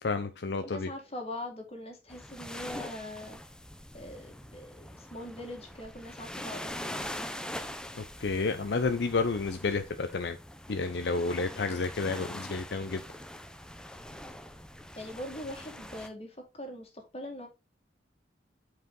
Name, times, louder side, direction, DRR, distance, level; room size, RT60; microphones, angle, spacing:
voice 1, 0.0-0.9 7.9-10.4 10.7-13.0, left 4 dB, 65° left, 0.6 m, -30 dB
voice 2, 0.6-3.4 3.9-7.2 15.0-17.5, left 1 dB, 35° left, 2.0 m, -42 dB
sound 1, 2.1-16.1, left 1 dB, 5° left, 0.6 m, -43 dB
8.0 x 4.9 x 3.7 m
head